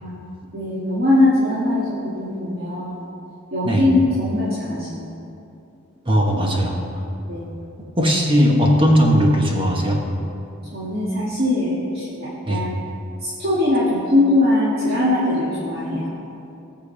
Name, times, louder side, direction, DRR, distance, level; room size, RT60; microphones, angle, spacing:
voice 1, 0.0-1.9 2.2-3.1 3.5-5.1 7.3-7.5 10.7-12.8 13.2-16.1, left 2 dB, 45° right, -9 dB, 2.1 m, -21 dB
voice 2, 6.1-6.8 8.0-10.0 12.4-12.7, equal, 25° right, 0 dB, 1.3 m, -17 dB
18.5 x 6.9 x 3.4 m, 2.7 s
head